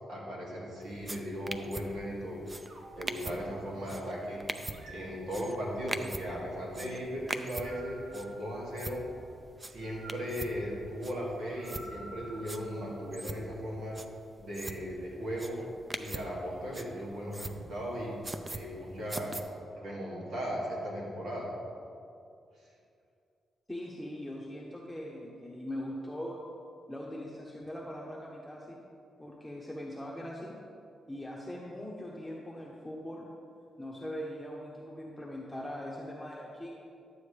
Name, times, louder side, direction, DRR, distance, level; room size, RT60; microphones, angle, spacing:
voice 1, 0.1-2.4 2.9-4.4 4.9-9.1 9.6-14.0 14.4-15.6 16.0-19.4 19.8-21.5, equal, 80° right, -4 dB, 2.4 m, -37 dB
sound 1, 0.9-19.4, right 2 dB, 20° right, 0.5 m, -43 dB
sound 2, 2.7-4.0 4.7-5.9 7.4-9.2 9.8-13.3, right 1 dB, 65° right, 1.1 m, -52 dB
voice 2, 23.7-26.4 26.9-28.8 29.2-30.6 31.1-33.3 33.8-36.8, left 1 dB, 5° left, -4 dB, 1.0 m, -41 dB
11.5 x 7.9 x 3.3 m, 2.5 s
cardioid pair, 95°, 0 cm